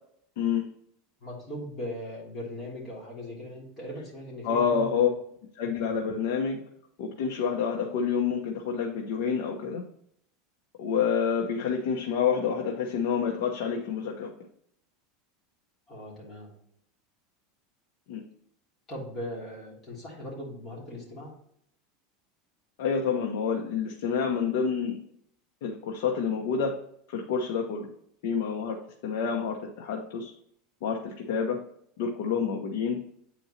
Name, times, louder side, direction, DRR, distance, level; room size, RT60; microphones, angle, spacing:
voice 1, 0.4-0.7 4.4-5.1 5.6-6.6 7.0-9.9 10.8-14.3 18.1-18.2 22.8-25.0 25.6-26.8 27.1-27.9 28.2-30.3 30.8-31.6 32.0-33.0, left 6 dB, 70° left, 0 dB, 1.1 m, -28 dB
voice 2, 1.2-5.1 15.9-16.5 18.9-21.4, left 1 dB, 20° left, -5 dB, 2.9 m, -39 dB
9.1 x 4.5 x 2.9 m, 0.68 s
supercardioid pair, 160°, 0 cm